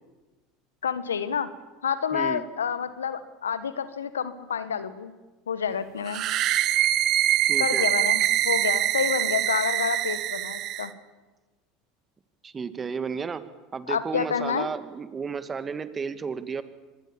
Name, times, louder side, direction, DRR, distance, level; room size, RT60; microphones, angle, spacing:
voice 1, 0.8-1.5 1.8-5.1 5.5-6.3 7.6-10.9 13.9-14.7, left 7 dB, 90° left, 13 dB, 1.4 m, -28 dB
voice 2, 2.1-2.4 7.4-7.9 12.4-13.4 13.7-16.6, right 5 dB, 25° right, 12 dB, 1.9 m, -33 dB
sound 1, 6.1-10.9, right 13 dB, 50° right, 1.4 m, -24 dB
25.5 x 20.5 x 7.2 m, 1.2 s
hypercardioid pair, 80°, 0 cm